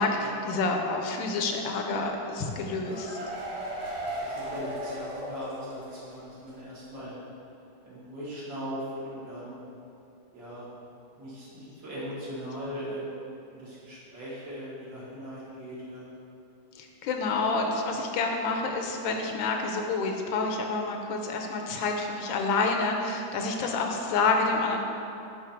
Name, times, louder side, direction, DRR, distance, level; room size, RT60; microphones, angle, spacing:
voice 1, 0.0-3.2 16.8-24.8, left 3 dB, 80° left, 3 dB, 1.4 m, -28 dB
sound 1, 2.5-6.1 6.4-6.5 6.8-6.9, right 1 dB, 90° right, 2.0 m, -36 dB
voice 2, 4.1-7.1 7.8-9.6 10.3-10.7 11.2-13.1 13.5-16.0, equal, 70° right, -9 dB, 2.6 m, -39 dB
6.0 x 5.5 x 4.5 m, 2.8 s
omnidirectional pair, 2.1 m